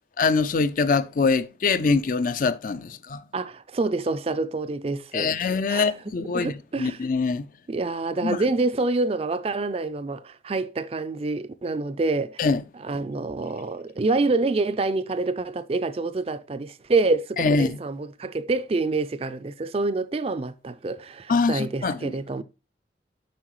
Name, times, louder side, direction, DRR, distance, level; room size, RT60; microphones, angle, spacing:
voice 1, 0.2-3.2 5.1-6.5 6.8-7.5 8.2-8.4 12.4-12.6 17.4-17.8 21.3-22.1, left 4 dB, 50° left, 0.4 m, -23 dB
voice 2, 3.3-5.9 6.3-7.0 7.7-12.5 12.7-22.4, right 3 dB, 35° right, 0.4 m, -27 dB
7.4 x 5.6 x 3.0 m
head